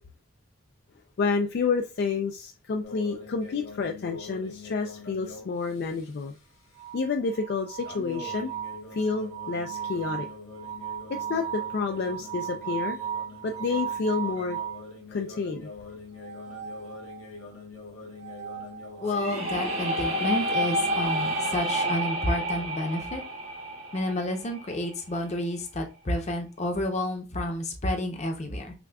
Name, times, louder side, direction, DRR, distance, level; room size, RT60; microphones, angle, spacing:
voice 1, 1.2-6.3 6.9-8.5 8.9-10.3 11.1-13.0 13.4-14.6 15.1-15.7, left 4 dB, 50° left, 0.3 m, -29 dB
sound 1, 2.8-6.4 7.8-21.1, left 3 dB, 80° left, 1.2 m, -44 dB
sound 2, 6.8-14.9 16.1-17.4 18.1-20.1 21.3-22.7, right 9 dB, 60° right, 1.4 m, -37 dB
voice 2, 19.0-23.2 23.9-28.7, left 1 dB, 35° left, 0.7 m, -30 dB
sound 3, 19.1-24.9, right 1 dB, 85° right, 1.6 m, -29 dB
5.8 x 2.3 x 2.3 m
head